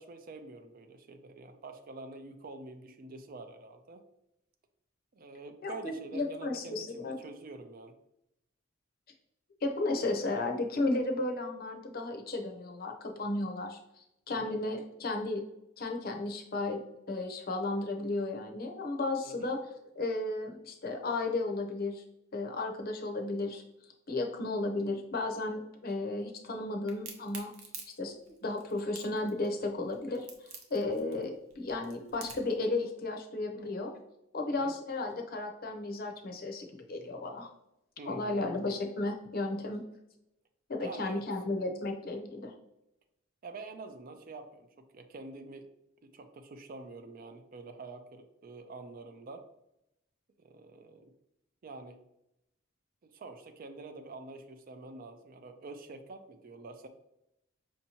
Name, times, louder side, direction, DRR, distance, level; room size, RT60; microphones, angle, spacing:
voice 1, 0.0-4.0 5.1-7.9 14.3-14.6 19.2-19.5 34.5-34.7 38.0-38.5 40.8-41.2 43.4-45.7 46.0-49.4 50.4-51.1 51.6-52.0 53.0-56.9, right 3 dB, 45° right, 8 dB, 0.4 m, -47 dB
voice 2, 5.6-7.1 9.6-13.8 14.3-15.4 15.8-16.8 17.1-19.6 20.0-22.0 22.3-23.6 24.1-27.5 28.0-30.3 30.7-33.9 34.3-37.5 38.1-39.8 40.7-42.5, left 2 dB, 50° left, 3 dB, 0.6 m, -34 dB
Crack, 26.9-32.6, right 5 dB, 85° right, 0.7 m, -47 dB
5.3 x 2.8 x 2.8 m, 0.85 s
head